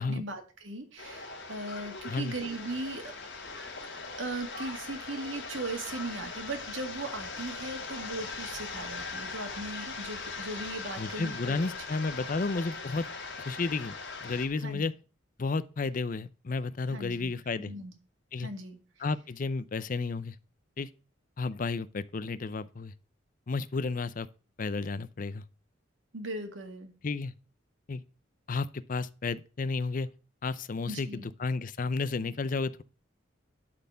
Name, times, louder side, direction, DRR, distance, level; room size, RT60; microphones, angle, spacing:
voice 1, 0.0-3.1 4.2-11.6 14.6-14.8 16.9-17.3 17.7-17.9 18.4-18.8 26.1-26.9 30.9-31.3, right 2 dB, 75° right, 2.0 m, -38 dB
sound 1, 1.0-14.5, left 4 dB, 60° left, 3.0 m, -40 dB
voice 2, 11.0-13.1 13.4-13.9 14.2-14.9 15.4-17.7 18.3-18.5 19.0-20.4 20.8-20.9 21.4-22.9 23.5-24.3 24.6-25.4 27.0-27.3 27.9-28.0 28.5-30.1 30.4-32.8, left 3 dB, 40° left, 0.5 m, -32 dB
11.5 x 4.3 x 6.8 m
head